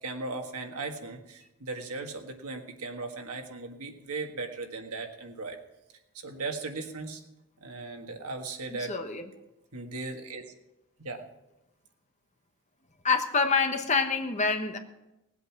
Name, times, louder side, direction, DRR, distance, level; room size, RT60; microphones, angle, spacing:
voice 1, 0.0-5.6 6.2-7.2 7.6-8.9 9.7-10.4 11.0-11.3, right 3 dB, 85° right, 4 dB, 1.7 m, -37 dB
voice 2, 8.9-9.3 13.0-14.8, left 4 dB, 30° left, 6 dB, 1.2 m, -26 dB
18.5 x 8.2 x 6.0 m, 0.93 s
head